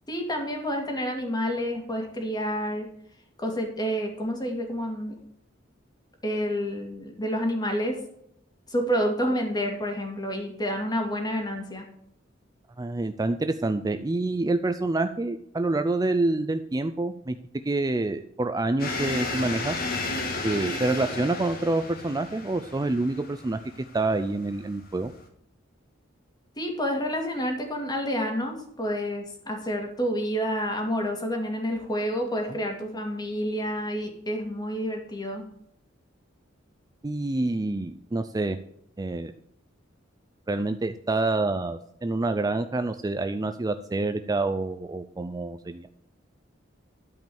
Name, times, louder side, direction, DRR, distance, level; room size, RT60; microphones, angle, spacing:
voice 1, 0.1-2.9 3.4-5.1 6.2-8.0 8.7-11.9 26.6-35.5, equal, 20° left, 2 dB, 2.4 m, -29 dB
voice 2, 12.8-17.4 17.6-19.8 20.4-23.6 23.9-25.1 32.5-32.6 37.0-38.6 39.0-39.3 40.5-45.9, right 2 dB, 20° right, 9 dB, 0.4 m, -27 dB
sound 1, 18.8-25.3, left 2 dB, 50° left, 1.9 m, -33 dB
12.5 x 5.3 x 7.0 m, 0.73 s
head